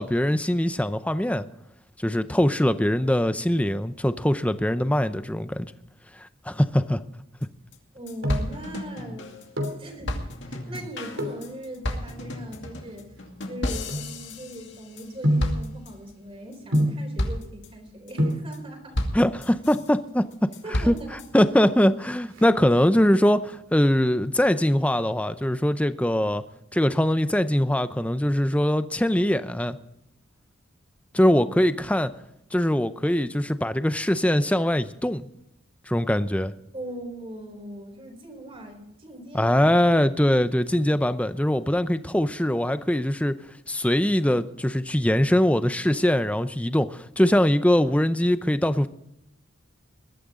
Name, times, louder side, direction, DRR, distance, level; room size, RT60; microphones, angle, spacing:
voice 1, 0.0-1.4 2.0-5.7 6.2-7.0 19.1-20.5 20.9-21.0 21.3-26.4 26.7-29.8 31.1-32.1 32.5-35.3 35.9-36.5 39.3-43.4 43.7-48.9, left 1 dB, 5° left, 11 dB, 0.6 m, -22 dB
sound 1, 7.4-7.5 7.7-7.8 8.1-9.7 10.1-15.1 15.4-16.1 16.5-16.8 17.2-17.7 18.1-18.6 18.9-19.9 20.3-21.3, left 1 dB, 60° left, 2.4 m, -32 dB
sound 2, 7.8-8.6 9.3-9.9 11.1-11.5 12.2-14.6 15.2-15.6 16.7-17.1 17.9-18.0 18.2-18.5 19.6-20.2 20.5-20.6 20.8-20.9 21.3-21.7 22.0-23.1 23.5-23.9 24.3-25.4 25.7-25.8, equal, 70° right, 3.1 m, -28 dB
voice 2, 7.9-9.3 9.8-13.1 13.4-19.0 20.6-21.2 36.7-39.7, right 1 dB, 25° right, 4 dB, 4.0 m, -40 dB
21.0 x 13.0 x 3.8 m, 0.83 s
head